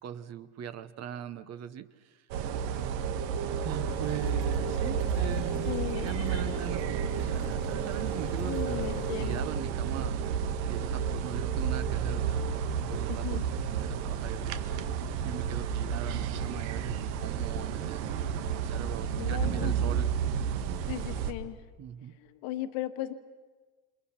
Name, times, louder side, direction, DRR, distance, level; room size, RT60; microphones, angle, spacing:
voice 1, 0.0-2.2 3.6-10.3 10.7-13.4 13.7-14.5 15.2-20.1 21.8-22.1, right 10 dB, 30° right, 12 dB, 1.0 m, -40 dB
sound 1, 2.3-21.3, right 7 dB, 90° right, 2.0 m, -31 dB
sound 2, 3.9-9.4, left 13 dB, 45° left, 0.9 m, -43 dB
voice 2, 5.7-6.1 8.5-9.5 13.1-13.4 19.1-19.8 20.9-21.6 22.4-23.1, left 14 dB, 60° left, 8 dB, 1.7 m, -36 dB
28.5 x 28.0 x 5.8 m, 1.3 s
cardioid pair, 155°, 50 cm